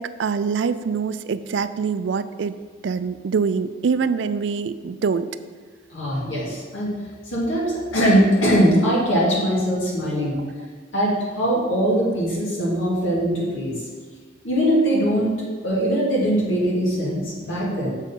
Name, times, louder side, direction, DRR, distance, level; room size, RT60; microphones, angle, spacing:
voice 1, 0.0-2.5 2.8-5.3, right 5 dB, 65° right, 13 dB, 0.3 m, -24 dB
voice 2, 5.9-6.9 7.3-10.4 10.9-13.8 14.4-17.9, equal, 85° left, -5 dB, 2.4 m, -21 dB
7.0 x 4.4 x 5.7 m, 1.5 s
head